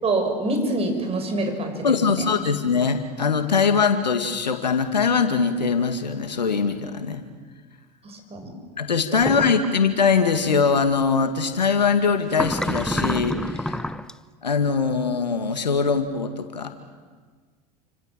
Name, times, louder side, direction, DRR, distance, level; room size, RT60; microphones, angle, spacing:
voice 1, 0.0-2.2 8.0-8.5, right 2 dB, 30° right, 4 dB, 7.0 m, -26 dB
voice 2, 1.8-7.2 8.8-13.8 14.4-16.7, left 5 dB, 90° left, 8 dB, 2.3 m, -22 dB
sound 1, 9.2-9.7 12.3-14.1, left 1 dB, 5° left, 0.9 m, -27 dB
29.5 x 26.5 x 7.5 m, 1.5 s
hypercardioid pair, 80°, 21 cm